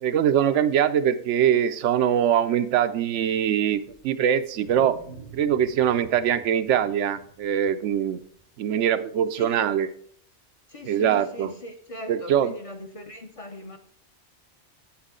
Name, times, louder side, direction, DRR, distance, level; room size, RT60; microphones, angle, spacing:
voice 1, 0.0-5.0 5.3-8.2 8.6-9.9 10.9-11.5 12.1-12.5, right 9 dB, 85° right, 0.9 m, -23 dB
Wild animals, 3.8-8.7, right 4 dB, 60° left, 3.6 m, -48 dB
voice 2, 10.7-13.8, left 1 dB, 35° left, 0.7 m, -40 dB
8.9 x 7.3 x 3.7 m
omnidirectional pair, 1.2 m